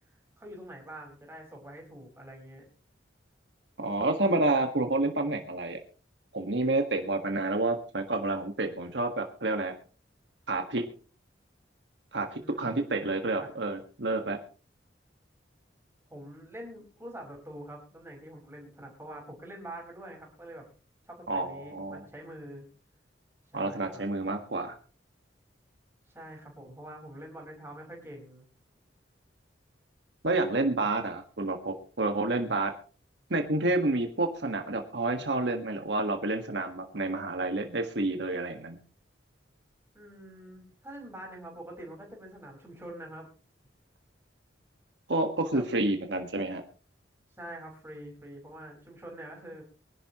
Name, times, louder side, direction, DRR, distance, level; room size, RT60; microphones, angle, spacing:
voice 1, 0.4-2.6 12.4-13.5 16.1-20.7 21.1-22.6 23.5-24.0 26.1-28.4 39.9-43.3 45.5-45.6 47.4-49.6, right 1 dB, 15° right, 1 dB, 4.9 m, -45 dB
voice 2, 3.8-5.8 6.3-9.7 10.5-10.8 12.1-14.4 21.3-22.0 23.5-24.7 30.2-32.7 33.3-38.8 45.1-46.6, right 2 dB, 70° right, 4 dB, 1.6 m, -29 dB
23.5 x 11.5 x 3.0 m, 0.37 s
head